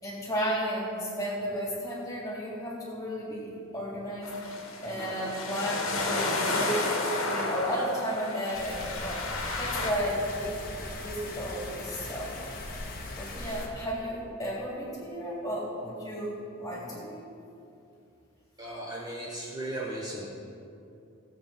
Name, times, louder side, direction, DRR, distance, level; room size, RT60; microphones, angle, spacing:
voice 1, 0.0-6.8 7.2-9.2 9.6-10.5 11.0-12.3 13.1-17.2, equal, 15° left, -5 dB, 3.4 m, -33 dB
sound 1, 4.2-9.9, left 2 dB, 65° left, 1.9 m, -32 dB
sound 2, 8.5-13.7, left 2 dB, 45° left, 1.6 m, -39 dB
voice 2, 18.6-20.3, right 1 dB, 20° right, -6 dB, 1.4 m, -36 dB
18.0 x 7.9 x 4.5 m, 2.6 s
head